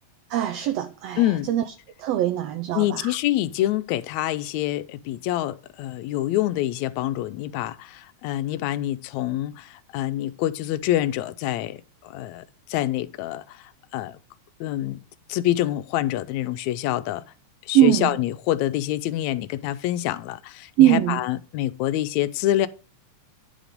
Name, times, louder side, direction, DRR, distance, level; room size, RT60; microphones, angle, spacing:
voice 1, 0.3-1.6 2.0-3.1 17.7-18.1 20.8-21.2, right 13 dB, 75° right, 1.5 m, -21 dB
voice 2, 1.2-1.5 2.8-11.8 12.0-12.4 12.7-14.2 14.6-15.0 15.3-17.2 17.7-22.7, left 14 dB, 80° left, 1.9 m, -26 dB
10.0 x 5.1 x 5.1 m
omnidirectional pair, 3.3 m